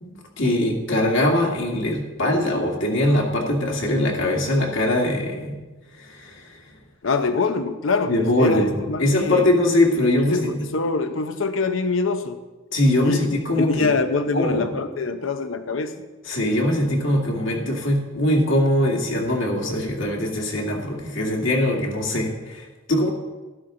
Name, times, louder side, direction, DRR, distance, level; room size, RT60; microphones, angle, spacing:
voice 1, 0.0-5.6 6.1-6.4 8.1-10.6 12.7-13.9 14.3-14.6 16.3-23.1, left 1 dB, 70° left, 0 dB, 2.1 m, -22 dB
voice 2, 7.0-9.6 10.3-12.4 13.0-13.2 13.6-16.0, left 4 dB, 90° left, 9 dB, 0.8 m, -24 dB
12.5 x 12.0 x 3.8 m, 1.2 s
head